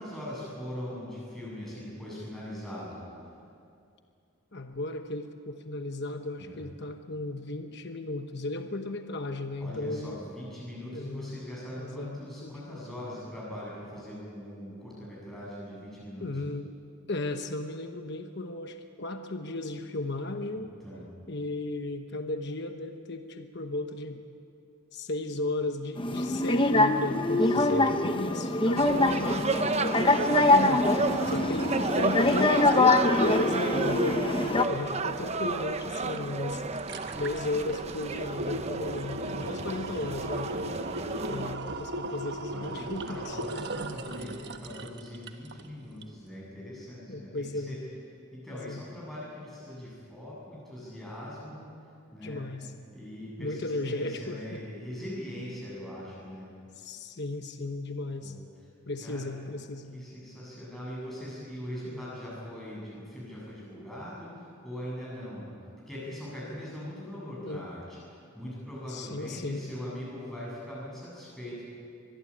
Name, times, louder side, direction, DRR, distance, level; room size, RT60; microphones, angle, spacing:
voice 1, 0.0-3.0 6.4-6.6 9.6-16.3 20.5-21.1 27.4-27.8 31.2-31.4 39.2-39.9 40.7-41.1 42.5-47.8 48.3-51.6 52.1-52.4 52.9-56.5 58.2-58.4 59.0-59.3 59.9-65.5 65.9-67.8 68.1-71.7, equal, ahead, -7 dB, 8.0 m, -41 dB
voice 2, 4.5-10.2 10.9-11.4 11.8-12.8 16.2-16.7 17.1-20.7 21.3-24.2 24.9-30.9 31.3-34.3 34.7-36.6 37.1-40.5 41.3-43.4 47.1-47.8 48.5-48.8 52.2-52.7 53.4-54.6 56.8-58.3 58.9-59.9 61.9-62.0 67.4-67.7 68.9-69.7, left 2 dB, 50° left, 6 dB, 1.1 m, -35 dB
sound 1, 26.0-34.6, left 2 dB, 25° left, 0.9 m, -24 dB
sound 2, 28.8-41.6, right 3 dB, 30° right, 0.8 m, -32 dB
sound 3, 36.2-36.3 36.6-45.7 46.0-46.1, right 1 dB, 50° right, 1.3 m, -37 dB
24.5 x 21.0 x 8.7 m, 2.5 s
head